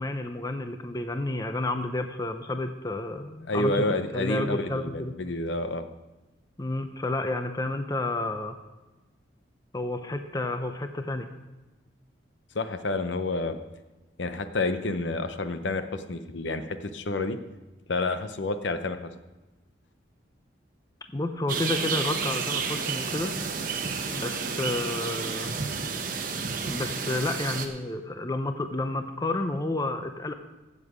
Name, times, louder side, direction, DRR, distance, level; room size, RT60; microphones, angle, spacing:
voice 1, 0.0-3.8 4.1-5.1 6.6-8.6 9.7-11.3 21.1-23.3 24.1-25.5 26.6-30.3, left 2 dB, 20° left, 8 dB, 0.6 m, -30 dB
voice 2, 3.5-5.8 12.5-13.6 14.2-17.4 17.9-19.1, left 2 dB, 75° left, 10 dB, 0.7 m, -29 dB
sound 1, 21.5-27.7, right 5 dB, 45° right, 1.0 m, -31 dB
16.0 x 7.5 x 4.9 m, 1.1 s
head